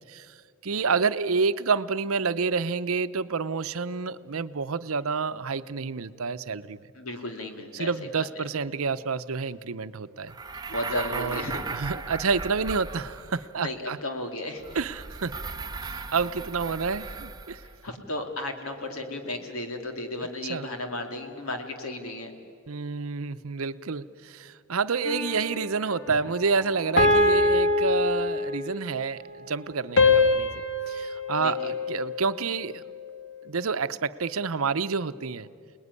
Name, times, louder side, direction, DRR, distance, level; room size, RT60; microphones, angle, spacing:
voice 1, 0.6-6.8 7.7-10.3 11.1-11.4 11.7-14.0 14.7-15.4 16.1-17.6 20.5-20.7 22.7-30.5 30.9-32.8 33.4-35.5, right 5 dB, 75° right, 12 dB, 0.8 m, -28 dB
voice 2, 6.9-8.4 10.7-11.6 13.6-14.8 17.6-22.4 26.1-26.2 31.4-31.7, left 1 dB, 80° left, 4 dB, 2.8 m, -34 dB
sound 1, 10.3-13.5 14.6-17.8, right 4 dB, 20° right, 0.9 m, -37 dB
sound 2, 25.0-25.7 27.0-28.8 30.0-32.4, left 2 dB, 55° left, 2.0 m, -23 dB
28.5 x 20.0 x 9.7 m, 2.3 s
head